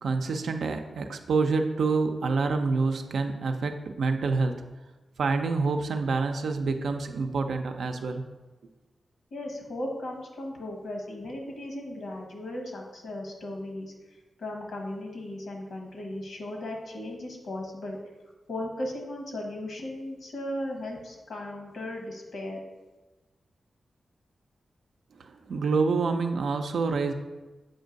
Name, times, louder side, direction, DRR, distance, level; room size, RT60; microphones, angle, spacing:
voice 1, 0.0-4.6 5.2-8.2 25.2-27.1, right 4 dB, 85° right, 6 dB, 0.5 m, -27 dB
voice 2, 9.3-13.9 14.4-18.0 18.5-22.6, left 1 dB, 85° left, 1 dB, 1.2 m, -36 dB
7.3 x 2.7 x 5.1 m, 1.2 s
wide cardioid pair, 105°, 0 cm